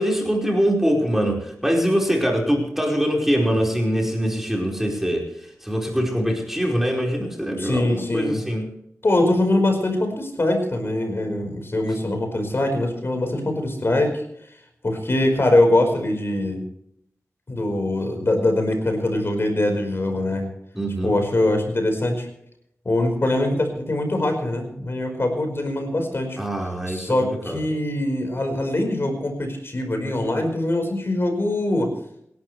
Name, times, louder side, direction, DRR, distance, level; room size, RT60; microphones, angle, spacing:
voice 1, 0.0-8.6 20.7-21.1 26.4-27.7, equal, 5° right, 0 dB, 4.8 m, -23 dB
voice 2, 7.6-8.4 9.0-14.2 14.8-16.6 17.5-20.5 21.0-22.3 22.8-26.4 26.9-31.9, left 1 dB, 45° left, 4 dB, 4.9 m, -22 dB
27.5 x 12.0 x 3.3 m, 0.72 s
wide cardioid pair, 65°, 5 cm